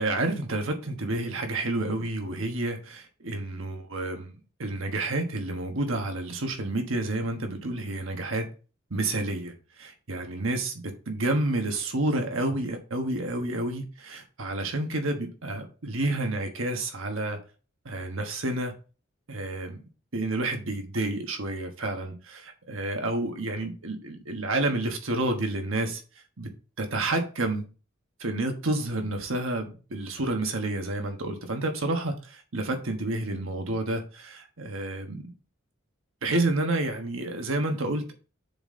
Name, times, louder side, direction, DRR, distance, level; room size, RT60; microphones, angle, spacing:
voice 1, 0.0-4.3 4.6-8.5 8.9-17.4 17.8-18.7 19.3-19.8 20.1-26.0 26.4-26.5 26.8-27.6 28.2-35.3 36.2-38.2, right 2 dB, 80° right, 1.3 m, -29 dB
6.9 x 4.2 x 3.7 m
head